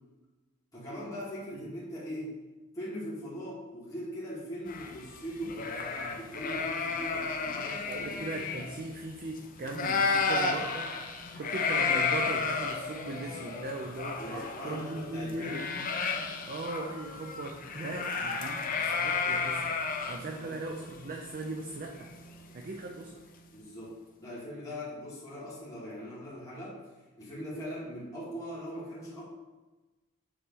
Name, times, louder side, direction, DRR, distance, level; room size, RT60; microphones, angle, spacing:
voice 1, 0.7-2.4 2.7-8.2 14.2-15.8 20.4-20.6 23.5-26.8 27.2-29.2, equal, 15° left, -9 dB, 1.9 m, -40 dB
sound 1, 4.7-9.4 9.7-22.6, left 4 dB, 40° left, 0.6 m, -33 dB
voice 2, 7.9-10.9 11.3-15.6 16.5-22.1 22.5-23.2, right 2 dB, 40° right, 2 dB, 0.5 m, -39 dB
7.0 x 3.3 x 5.3 m, 1.2 s
head